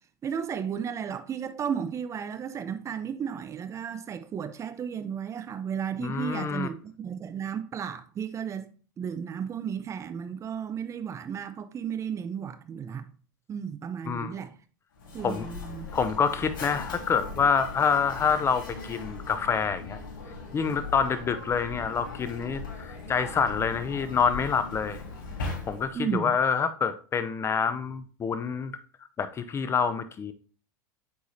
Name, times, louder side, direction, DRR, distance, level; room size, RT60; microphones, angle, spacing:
voice 1, 0.2-8.7 9.0-13.1 13.5-14.6 15.1-15.9 25.9-26.4, right 7 dB, 25° right, 0.7 m, -34 dB
voice 2, 6.0-6.7 14.1-14.3 15.2-15.5 15.9-20.0 20.5-25.0 25.7-28.7 29.2-30.3, left 6 dB, 25° left, 0.5 m, -27 dB
Mechanisms, 15.0-26.1, left 3 dB, 80° left, 3.1 m, -39 dB
8.3 x 4.7 x 2.8 m
hypercardioid pair, 110°, 11 cm